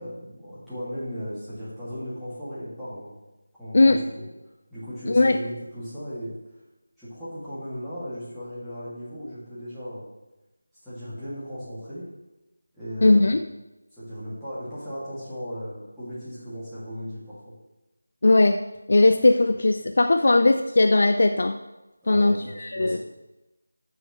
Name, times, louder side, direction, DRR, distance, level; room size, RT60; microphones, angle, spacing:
voice 1, 0.0-3.2 3.6-4.3 4.7-6.4 7.0-10.1 10.8-12.1 12.7-13.5 13.9-17.5 22.0-23.0, equal, ahead, -17 dB, 2.6 m, -36 dB
voice 2, 5.1-5.4 13.0-13.4 18.2-18.6 18.9-21.6 22.1-23.0, left 2 dB, 45° left, 7 dB, 0.4 m, -19 dB
14.0 x 6.4 x 3.3 m, 1.0 s
figure-of-eight pair, 165°, 0 cm